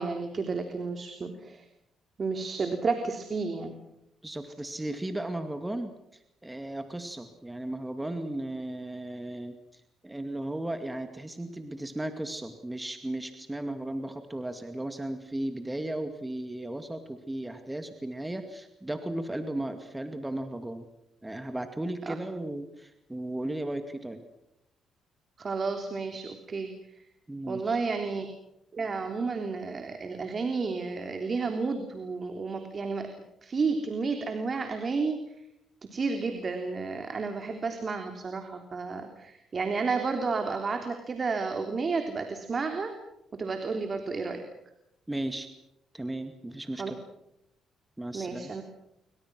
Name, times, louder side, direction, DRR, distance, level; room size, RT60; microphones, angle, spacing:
voice 1, 0.0-1.6 2.2-3.7 22.1-22.2 25.4-26.7 27.5-28.3 28.7-33.1 33.4-35.2 35.9-42.9 43.3-44.4 46.8-46.9 48.1-48.6, right 4 dB, 40° right, 5 dB, 3.4 m, -31 dB
voice 2, 4.2-20.9 21.2-24.2 27.3-27.8 45.1-45.5 45.9-47.0 48.0-48.6, right 1 dB, 10° right, 7 dB, 2.3 m, -35 dB
28.0 x 24.5 x 6.3 m, 0.84 s
cardioid pair, 90°, 0 cm